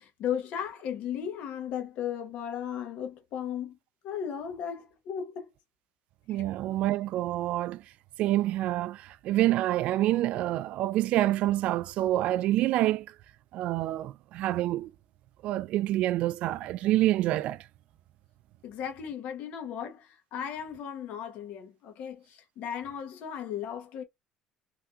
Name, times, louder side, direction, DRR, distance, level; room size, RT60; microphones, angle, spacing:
voice 1, 0.0-3.8 4.0-5.5 6.3-6.4 18.6-24.0, left 8 dB, 70° left, 1.1 m, -36 dB
voice 2, 6.3-7.8 8.2-13.1 13.5-14.9 15.4-17.6, right 14 dB, 70° right, 0.3 m, -27 dB
3.4 x 2.8 x 2.4 m
cardioid pair, 105°, 2 cm